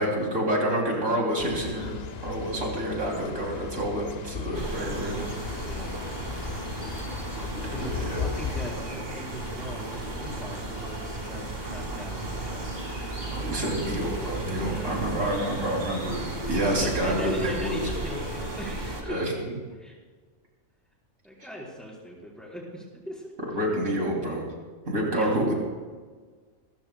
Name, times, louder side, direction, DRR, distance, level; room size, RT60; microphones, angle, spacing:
voice 1, 0.0-1.9 2.2-5.3 7.7-8.2 13.3-17.8 19.1-19.5 23.5-24.5 24.8-25.5, right 1 dB, 75° right, -1 dB, 3.3 m, -28 dB
sound 1, 1.4-8.7, left 7 dB, 85° left, 0.3 m, -37 dB
sound 2, 4.5-19.0, right 2 dB, 30° right, 2.1 m, -34 dB
voice 2, 5.6-6.0 7.7-12.8 14.5-15.6 16.7-19.2 19.8-19.9 21.2-23.3 25.1-25.5, equal, ahead, -4 dB, 4.1 m, -39 dB
26.5 x 14.5 x 2.2 m, 1.5 s
omnidirectional pair, 1.4 m